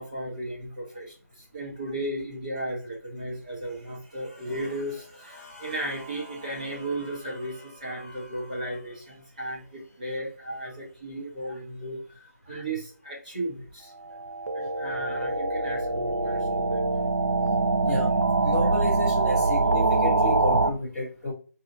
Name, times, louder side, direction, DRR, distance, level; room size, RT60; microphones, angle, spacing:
voice 1, 0.0-14.2 14.5-16.8, right 1 dB, 30° right, -4 dB, 1.3 m, -35 dB
sound 1, 14.0-20.7, right 3 dB, 70° right, 0.5 m, -24 dB
voice 2, 18.4-21.3, left 2 dB, ahead, -18 dB, 0.9 m, -31 dB
4.1 x 2.8 x 2.5 m, 0.38 s
figure-of-eight pair, 175°, 9 cm